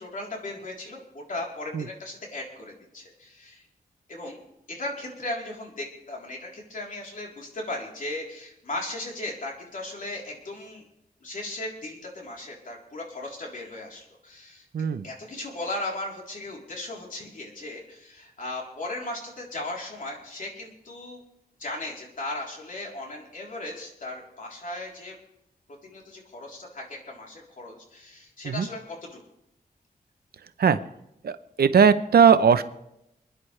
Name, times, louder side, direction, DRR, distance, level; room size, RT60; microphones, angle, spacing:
voice 1, 0.0-3.7 4.1-4.4 4.7-10.8 11.2-14.7 15.0-21.2 21.6-25.2 25.7-29.2, left 2 dB, 55° left, -1 dB, 3.7 m, -37 dB
voice 2, 14.7-15.1 28.4-28.7 30.6-30.8 31.2-32.6, right 6 dB, 80° right, 12 dB, 0.7 m, -19 dB
27.5 x 10.5 x 3.3 m, 0.83 s
wide cardioid pair, 160°, 16 cm